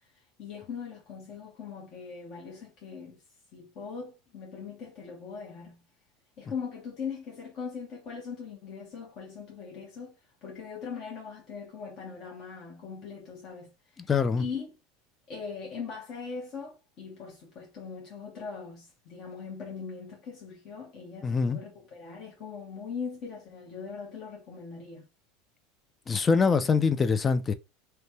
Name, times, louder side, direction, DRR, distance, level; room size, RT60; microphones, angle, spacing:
voice 1, 0.4-3.2 3.5-5.8 6.4-10.1 10.4-13.7 14.4-14.7 15.3-25.1, left 5 dB, 50° left, 1.1 m, -40 dB
voice 2, 14.1-14.4 21.2-21.6 26.1-27.5, left 5 dB, 25° left, 0.4 m, -24 dB
3.1 x 2.2 x 2.7 m
supercardioid pair, 105°, 0 cm